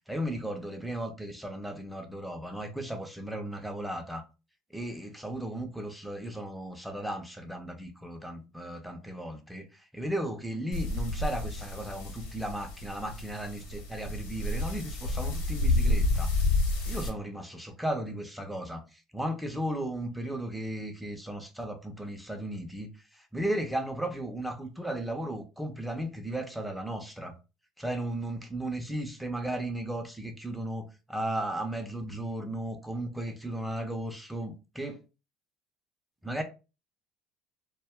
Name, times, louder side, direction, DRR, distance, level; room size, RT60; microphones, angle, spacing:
voice 1, 0.1-4.2 4.7-9.7 9.9-16.3 16.9-18.8 19.1-22.9 23.3-27.3 27.8-35.0 36.2-36.4, right 1 dB, 5° right, 0.7 m, -35 dB
sound 1, 10.7-17.1, left 2 dB, 70° left, 0.9 m, -30 dB
2.2 x 2.0 x 3.5 m
hypercardioid pair, 80°, 0 cm